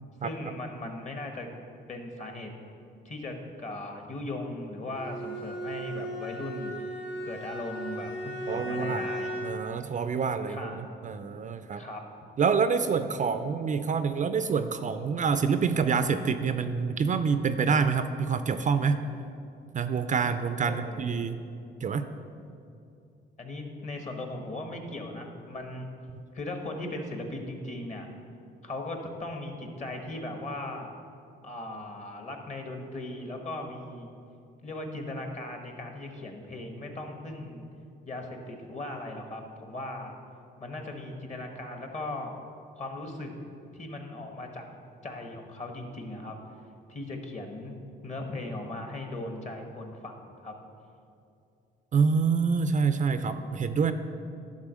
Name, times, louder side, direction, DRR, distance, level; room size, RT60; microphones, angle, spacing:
voice 1, 0.2-1.5 1.9-2.5 3.0-6.9 7.2-9.3 10.5-10.9 11.7-12.0 20.6-21.2 23.4-25.9 26.3-28.1 28.6-30.9 31.4-34.1 34.6-37.7 38.1-40.1 40.6-42.3 42.8-43.3 43.7-44.7 45.0-46.4 46.9-47.8 48.0-50.5, left 2 dB, 35° left, 3 dB, 1.3 m, -38 dB
Bowed string instrument, 4.9-9.8, right 1 dB, 70° left, 1.6 m, -36 dB
voice 2, 8.5-9.0 9.4-11.8 12.4-19.0 19.7-21.4 21.8-22.1 51.9-53.9, right 5 dB, 40° right, 10 dB, 0.4 m, -27 dB
11.0 x 3.8 x 6.3 m, 2.6 s
cardioid pair, 90°, 20 cm